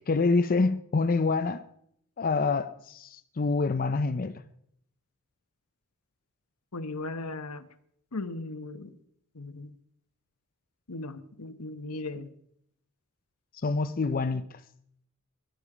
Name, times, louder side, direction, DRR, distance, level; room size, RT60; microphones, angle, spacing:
voice 1, 0.1-1.6 2.2-4.4 13.6-14.5, left 3 dB, 40° left, 0.6 m, -26 dB
voice 2, 6.7-7.7 8.1-9.0 9.3-9.8 10.9-12.3, left 2 dB, 85° left, 1.2 m, -37 dB
20.5 x 11.5 x 5.0 m
head